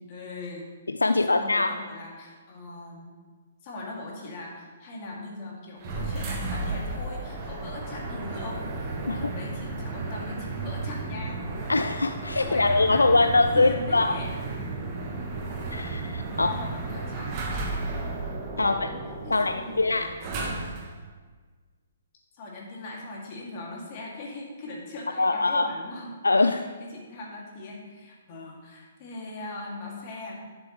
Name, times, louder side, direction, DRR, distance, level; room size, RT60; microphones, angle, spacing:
voice 1, 0.1-0.7 1.1-3.2 3.6-11.7 12.4-14.3 16.3-17.4 17.8-18.1 18.5-18.9 19.2-20.6 22.3-26.1 26.5-30.4, left 2 dB, 40° left, -2 dB, 2.3 m, -40 dB
voice 2, 0.9-1.7 9.1-9.2 11.7-14.1 15.7-16.5 18.6-18.9 19.3-20.1 25.2-25.7 26.2-26.7, left 3 dB, 80° left, 8 dB, 0.3 m, -23 dB
sound 1, 5.8-21.0, right 3 dB, 30° right, 1.3 m, -33 dB
11.0 x 6.9 x 3.1 m, 1.4 s
figure-of-eight pair, 125°, 0 cm